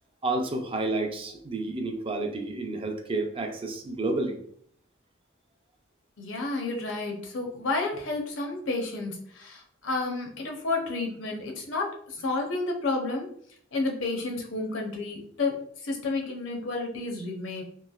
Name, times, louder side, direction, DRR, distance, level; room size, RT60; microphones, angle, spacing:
voice 1, 0.2-4.4, right 2 dB, 30° right, 4 dB, 0.4 m, -30 dB
voice 2, 6.2-13.3 13.7-17.6, left 3 dB, 80° left, 1 dB, 0.7 m, -31 dB
3.1 x 2.8 x 2.3 m, 0.63 s
head